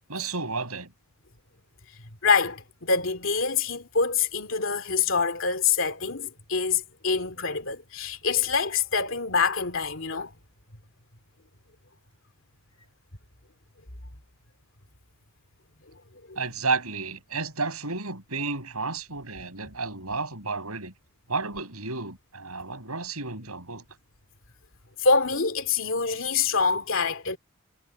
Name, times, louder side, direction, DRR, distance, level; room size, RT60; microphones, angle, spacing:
voice 1, 0.1-0.9 16.4-20.9 21.3-23.8, right 4 dB, 90° right, 7.5 m, -32 dB
voice 2, 2.2-10.3 16.3-16.4 25.0-27.4, left 5 dB, 60° left, 2.7 m, -25 dB
head